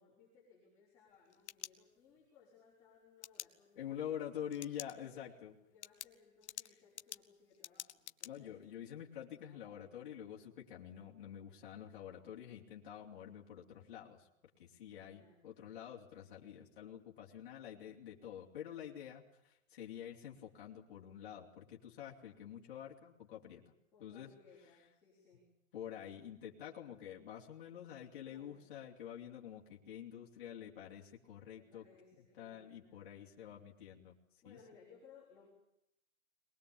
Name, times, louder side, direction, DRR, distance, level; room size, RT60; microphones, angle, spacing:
voice 1, 0.0-4.0 4.5-5.3 5.6-8.6 9.4-9.8 15.0-15.5 23.9-25.5 28.2-28.7 31.5-33.6 34.4-35.5, left 6 dB, 5° left, -9 dB, 5.4 m, -64 dB
sound 1, 1.1-2.3 3.2-3.5 4.5-4.9 5.3-5.4 5.8-8.3, left 10 dB, 55° left, 1.0 m, -48 dB
voice 2, 3.8-5.5 8.2-14.3 14.6-23.6 24.0-24.3 25.7-31.9 32.4-34.1 34.4-34.6, left 10 dB, 40° left, -3 dB, 3.3 m, -48 dB
23.0 x 20.0 x 8.6 m, 0.82 s
hypercardioid pair, 180°, 41 cm